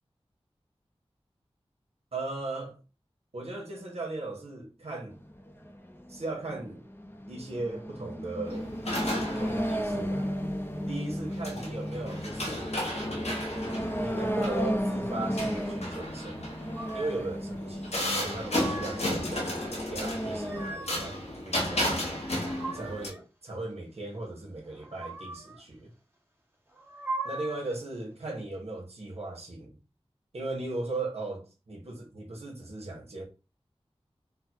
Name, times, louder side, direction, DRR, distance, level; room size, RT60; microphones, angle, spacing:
voice 1, 2.1-2.8 3.3-5.2 6.1-6.8 7.3-8.7 9.3-10.4 10.9-12.8 14.0-16.5 16.9-22.2 22.7-25.9 27.2-29.8 30.3-33.2, right 2 dB, 75° right, 1.3 m, -38 dB
sound 1, 5.1-20.7, equal, 20° left, 0.7 m, -34 dB
sound 2, 8.4-23.1, left 1 dB, 85° left, 1.2 m, -34 dB
sound 3, 16.7-17.3 18.2-19.2 20.1-21.1 22.1-23.2 24.7-25.6 26.7-27.8, right 2 dB, 20° right, 1.2 m, -40 dB
3.8 x 2.3 x 4.4 m
wide cardioid pair, 60°, 11 cm